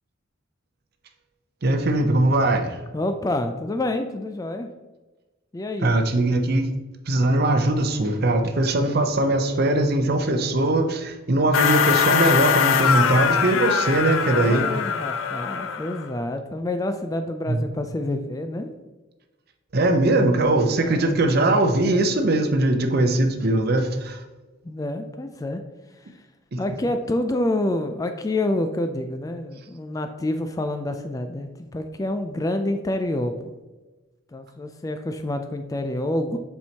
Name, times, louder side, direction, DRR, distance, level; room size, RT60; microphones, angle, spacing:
voice 1, 1.6-2.8 5.8-6.7 7.1-14.7 17.5-17.6 19.7-24.2 26.5-26.6, right 2 dB, 50° right, 6 dB, 0.6 m, -21 dB
voice 2, 2.9-4.7 5.5-5.9 14.2-18.7 20.8-21.2 24.6-25.6 25.9-26.3 26.6-33.6 34.3-36.4, left 1 dB, 15° left, 7 dB, 0.3 m, -28 dB
sound 1, 11.5-16.1, left 7 dB, 75° left, 0.5 m, -22 dB
7.5 x 4.5 x 2.8 m, 1.2 s
head